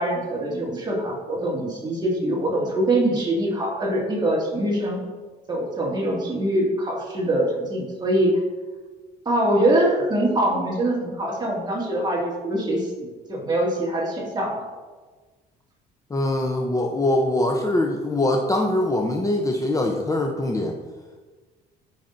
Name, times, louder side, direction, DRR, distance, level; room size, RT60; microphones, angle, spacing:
voice 1, 0.0-5.0 5.5-8.4 9.3-14.7, right 1 dB, 25° right, -3 dB, 2.2 m, -23 dB
voice 2, 16.1-20.8, left 1 dB, 20° left, 2 dB, 0.7 m, -23 dB
12.5 x 5.6 x 2.6 m, 1.4 s
cardioid pair, 110°, 17 cm